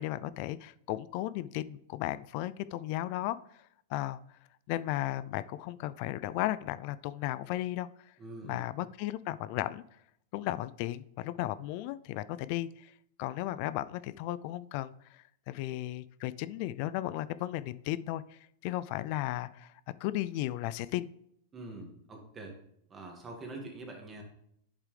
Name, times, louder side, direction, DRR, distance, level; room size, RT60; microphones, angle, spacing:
voice 1, 0.0-3.4 3.9-4.2 4.7-7.9 8.4-9.8 10.3-12.9 13.2-19.7 20.0-21.1, left 15 dB, 50° left, 17 dB, 0.3 m, -35 dB
voice 2, 8.2-8.7 21.5-22.6 22.9-24.2, right 2 dB, 20° right, 2 dB, 2.0 m, -44 dB
8.1 x 7.3 x 3.3 m, 0.72 s
hypercardioid pair, 130°, 0 cm